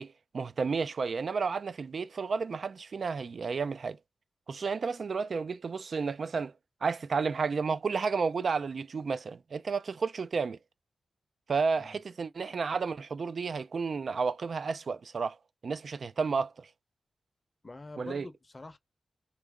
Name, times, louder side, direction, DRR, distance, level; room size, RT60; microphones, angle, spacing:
voice 1, 0.0-4.0 4.5-6.5 6.8-10.6 11.5-15.4 15.6-16.7 18.0-18.3, right 5 dB, 65° right, 0.3 m, -32 dB
voice 2, 17.6-18.8, left 2 dB, 35° left, 0.7 m, -45 dB
2.8 x 2.5 x 3.5 m
cardioid pair, 80°, 0 cm